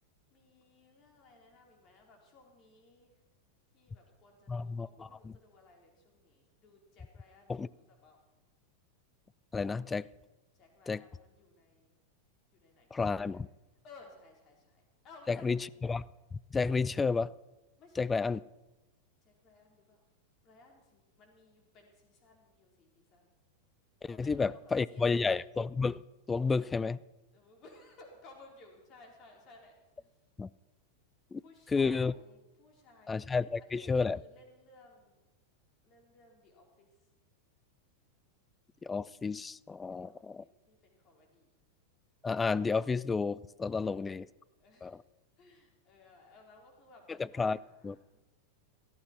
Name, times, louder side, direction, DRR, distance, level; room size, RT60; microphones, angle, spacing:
voice 1, 0.3-3.2 3.7-8.2 10.5-12.0 12.5-13.4 13.8-15.9 17.8-18.0 19.2-20.0 20.4-23.3 24.1-25.4 27.3-30.2 31.4-35.2 35.8-37.1 39.8-41.6 43.7-44.2 44.5-45.0 45.4-48.2, left 2 dB, 35° left, 1 dB, 4.4 m, -59 dB
voice 2, 4.5-5.3 7.5-7.7 9.5-10.0 10.9-11.0 12.9-13.5 15.3-16.0 16.3-17.3 18.0-18.4 24.0-26.0 26.3-27.0 30.4-30.5 31.3-31.4 31.7-32.1 33.1-34.2 38.8-40.4 42.2-44.3 44.8-45.0 47.4-47.6 47.8-48.0, left 4 dB, 15° left, 21 dB, 0.4 m, -31 dB
17.5 x 14.0 x 4.6 m, 1.0 s
figure-of-eight pair, 90°, 0 cm